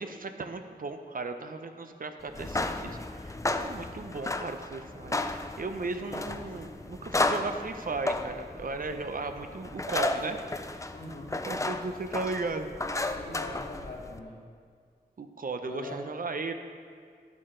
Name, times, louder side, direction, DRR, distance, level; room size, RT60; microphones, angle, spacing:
voice 1, 0.0-10.4 11.5-12.7 15.2-16.5, right 3 dB, 55° right, 7 dB, 0.7 m, -36 dB
sound 1, 2.3-14.2, left 2 dB, 20° left, 0.5 m, -33 dB
voice 2, 6.0-6.3 10.9-11.5 13.1-14.5 15.6-16.1, left 2 dB, 90° left, -3 dB, 1.7 m, -43 dB
10.5 x 8.3 x 3.8 m, 2.1 s
cardioid pair, 55°, 17 cm